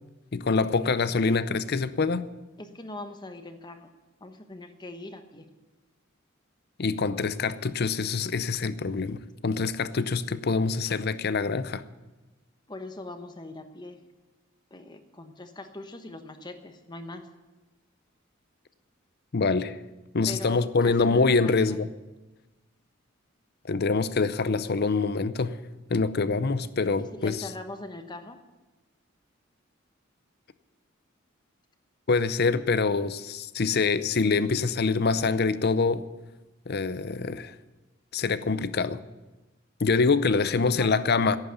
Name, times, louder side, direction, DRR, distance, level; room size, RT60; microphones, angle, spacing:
voice 1, 0.3-2.3 6.8-11.8 19.3-19.8 20.1-21.9 23.7-25.6 25.9-27.5 32.1-36.0 36.7-37.6 38.1-39.0 39.8-41.4, left 4 dB, 50° left, 14 dB, 0.6 m, -25 dB
voice 2, 2.6-3.9 4.2-5.5 12.7-14.0 14.7-17.3 20.3-21.8 27.1-28.4 40.3-40.9, left 2 dB, 20° left, 7 dB, 1.0 m, -41 dB
11.0 x 9.2 x 10.0 m, 1.1 s
head